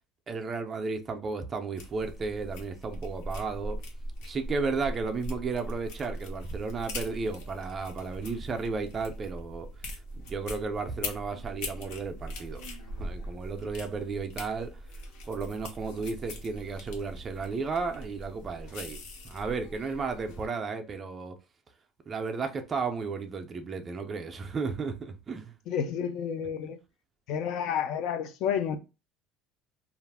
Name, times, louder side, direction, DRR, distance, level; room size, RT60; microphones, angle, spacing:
voice 1, 0.3-3.8 4.2-9.7 10.2-12.6 13.0-14.7 15.3-19.0 19.2-21.3 22.1-25.5, right 4 dB, 25° right, 0.4 m, -33 dB
sound 1, 1.8-20.5, equal, 75° left, 0.8 m, -41 dB
voice 2, 25.7-26.8 27.3-28.8, left 8 dB, 55° left, 0.3 m, -30 dB
2.3 x 2.0 x 3.3 m
cardioid pair, 160°, 0 cm